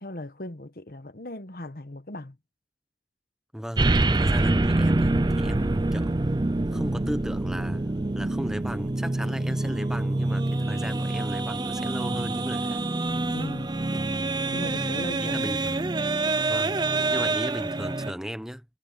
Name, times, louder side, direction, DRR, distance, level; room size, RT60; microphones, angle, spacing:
voice 1, 0.0-2.4 13.3-13.7 14.5-15.6, left 1 dB, 55° left, 1.2 m, -37 dB
voice 2, 3.5-6.4 6.7-12.9 13.9-14.1 15.2-15.9 16.5-18.6, equal, 5° right, 1.0 m, -36 dB
sound 1, 3.8-18.1, right 2 dB, 25° right, 0.5 m, -26 dB
head